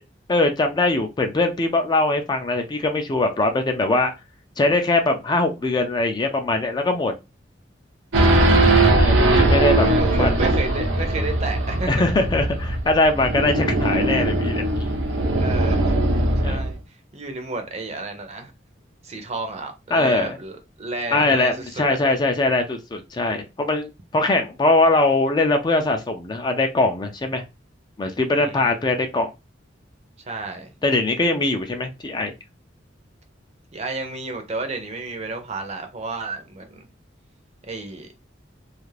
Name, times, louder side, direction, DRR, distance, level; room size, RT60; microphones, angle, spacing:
voice 1, 0.3-4.1 4.6-7.1 9.0-9.9 10.2-10.4 11.9-14.6 16.4-16.6 19.9-20.4 21.1-27.4 28.0-29.3 30.8-32.3, left 2 dB, 25° left, 0.3 m, -21 dB
Race car auto racing / Idling / Accelerating revving vroom, 8.1-16.7, right 2 dB, 90° right, 0.7 m, -20 dB
voice 2, 9.5-12.1 15.4-16.0 16.4-16.8 17.1-18.5 19.0-21.6 21.9-22.0 28.3-28.8 30.2-30.7 33.7-36.9 37.6-38.1, right 3 dB, 35° right, 0.6 m, -32 dB
2.4 x 2.4 x 3.2 m
head